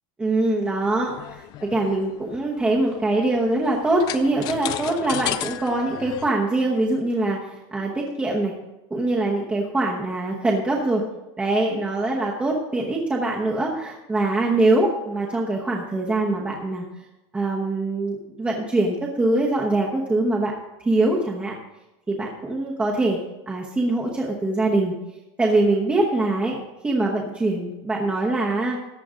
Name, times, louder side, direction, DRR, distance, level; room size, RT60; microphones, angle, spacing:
voice 1, 0.2-8.5 8.9-11.0 11.4-16.9 17.3-20.5 20.8-21.6 22.1-23.2 23.5-24.9 25.4-28.8, right 2 dB, 10° right, -3 dB, 1.1 m, -23 dB
sound 1, 0.8-6.3, left 14 dB, 30° left, 0.4 m, -34 dB
14.5 x 10.0 x 3.8 m, 0.98 s
supercardioid pair, 175°, 13 cm